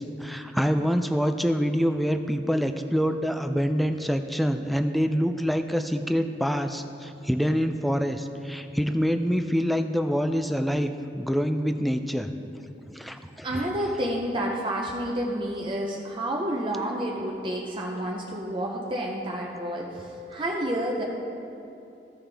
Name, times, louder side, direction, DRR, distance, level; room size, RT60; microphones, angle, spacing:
voice 1, 0.0-12.3 12.9-13.5, equal, ahead, 7 dB, 0.3 m, -26 dB
voice 2, 13.4-21.0, right 1 dB, 30° right, -1 dB, 0.7 m, -29 dB
15.5 x 5.6 x 3.4 m, 2.8 s
head